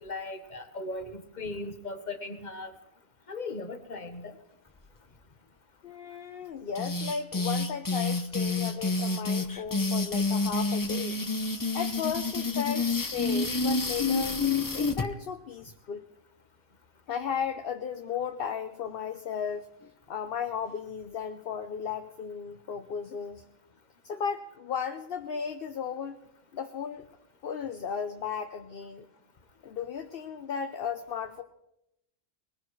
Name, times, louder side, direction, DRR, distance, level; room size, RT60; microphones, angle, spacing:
voice 1, 0.0-2.8 3.3-4.3, left 2 dB, 45° left, 8 dB, 1.4 m, -38 dB
voice 2, 5.8-11.2 11.7-14.4 14.7-16.0 17.1-19.7 20.1-23.4 24.0-26.2 26.5-27.0 27.4-29.1 29.6-31.4, left 7 dB, 60° left, 7 dB, 0.9 m, -35 dB
sound 1, 6.7-15.1, left 3 dB, 20° left, 0.7 m, -28 dB
21.0 x 20.5 x 3.2 m, 0.82 s
omnidirectional pair, 1.1 m